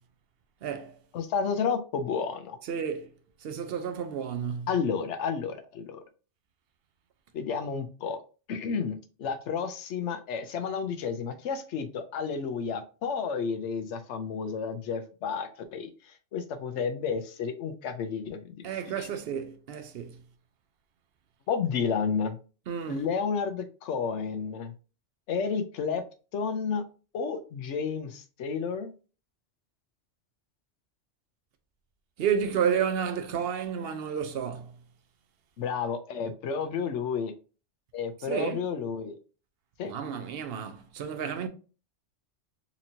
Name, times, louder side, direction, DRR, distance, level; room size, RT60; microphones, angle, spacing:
voice 1, 0.6-1.0 2.7-3.1 3.4-4.7 18.6-20.2 22.7-23.1 32.2-34.8 38.3-38.6 39.9-41.5, right 7 dB, 65° right, 0.8 m, -31 dB
voice 2, 1.1-2.6 4.7-6.0 7.3-8.2 8.5-19.1 21.5-22.4 22.9-24.7 25.3-26.0 26.3-26.8 27.1-28.9 35.6-37.3 37.9-39.2 39.8-39.9, left 6 dB, 85° left, 0.9 m, -31 dB
4.2 x 2.9 x 2.6 m
omnidirectional pair, 1.2 m